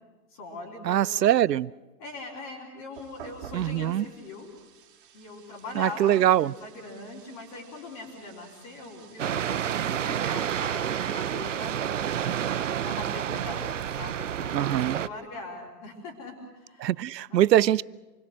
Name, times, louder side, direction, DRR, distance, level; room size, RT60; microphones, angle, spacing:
voice 1, 0.3-1.4 2.0-4.5 5.1-12.4 12.8-16.9 17.3-17.8, left 2 dB, 20° left, 3.8 m, -41 dB
voice 2, 0.8-1.7 3.5-4.1 5.8-6.5 14.5-15.0 16.8-17.8, right 12 dB, 85° right, 0.7 m, -23 dB
sound 1, 2.9-10.3, right 7 dB, 30° right, 3.3 m, -51 dB
sound 2, 9.2-15.1, right 9 dB, 50° right, 0.7 m, -29 dB
28.0 x 21.5 x 6.4 m
hypercardioid pair, 180°, 48 cm